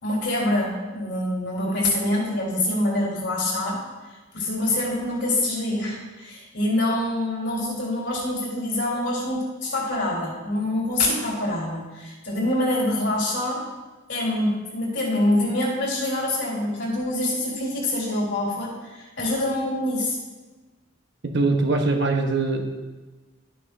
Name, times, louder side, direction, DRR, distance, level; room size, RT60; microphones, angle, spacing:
voice 1, 0.0-3.8 4.3-13.6 14.1-20.2, left 1 dB, 55° left, -3 dB, 3.6 m, -25 dB
voice 2, 21.2-22.7, right 3 dB, 55° right, 3 dB, 1.1 m, -22 dB
12.5 x 9.9 x 2.6 m, 1.2 s
head